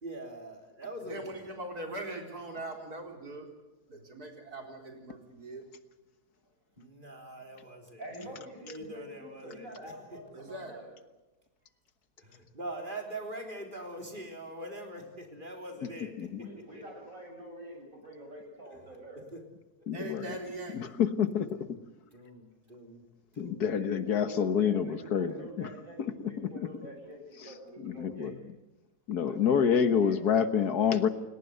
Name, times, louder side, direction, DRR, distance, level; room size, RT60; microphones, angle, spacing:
voice 1, 0.0-1.5 6.8-8.0 8.6-10.2 12.2-16.3 16.7-16.8 19.3-19.4 19.8-19.9 21.5-21.8 22.1-23.0 23.3-23.6, right 1 dB, 30° right, 3 dB, 3.8 m, -43 dB
voice 2, 1.1-3.5 3.9-5.6 10.3-10.7 19.9-21.0, right 2 dB, 75° right, 3 dB, 4.7 m, -41 dB
voice 3, 8.0-10.9 16.4-19.2 23.6-28.4 29.2-30.4, right 1 dB, 60° right, 1 dB, 8.1 m, -46 dB
voice 4, 16.2-16.5 19.9-20.3 20.7-21.7 23.4-25.7 26.2-26.7 27.4-27.5 27.8-28.3 29.1-31.1, left 7 dB, 80° left, 11 dB, 1.9 m, -28 dB
28.5 x 18.0 x 8.1 m, 1.0 s
omnidirectional pair, 1.6 m